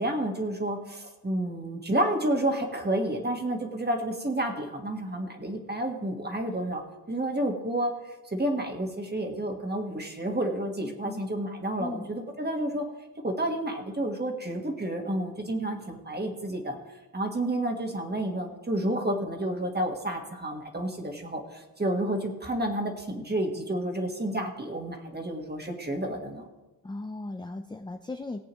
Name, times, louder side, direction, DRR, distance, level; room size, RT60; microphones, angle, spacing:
voice 1, 0.0-6.8 7.1-12.8 13.2-16.8 17.1-26.5, right 1 dB, 25° right, 3 dB, 1.5 m, -30 dB
voice 2, 10.8-11.2 11.8-12.1 26.8-28.4, left 2 dB, 10° left, 6 dB, 0.4 m, -37 dB
18.0 x 8.4 x 3.1 m, 1.1 s
wide cardioid pair, 115°, 39 cm